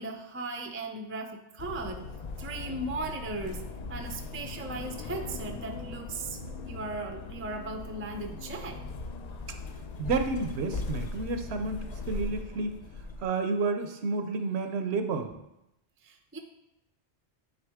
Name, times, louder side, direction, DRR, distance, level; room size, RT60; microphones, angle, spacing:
voice 1, 0.0-2.1 2.4-6.4 6.6-8.8 16.0-16.4, right 2 dB, 20° right, 5 dB, 0.3 m, -37 dB
sound 1, 1.6-13.2, left 3 dB, 55° left, 0.5 m, -39 dB
voice 2, 10.0-12.8 13.2-15.4, right 3 dB, 70° right, 7 dB, 0.9 m, -30 dB
9.6 x 3.9 x 3.5 m, 0.86 s
omnidirectional pair, 1.2 m